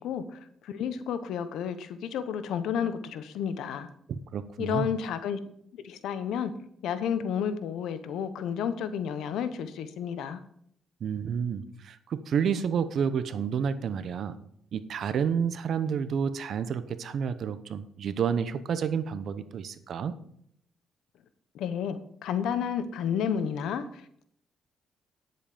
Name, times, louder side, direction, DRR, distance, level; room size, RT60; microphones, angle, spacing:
voice 1, 0.0-3.9 4.6-5.4 5.8-6.5 6.8-10.4 21.5-24.2, left 8 dB, 80° left, 12 dB, 1.0 m, -31 dB
voice 2, 4.1-4.9 11.0-14.4 14.7-20.1, right 7 dB, 65° right, 13 dB, 0.9 m, -30 dB
9.8 x 8.0 x 5.1 m, 0.68 s
cardioid pair, 90°, 0 cm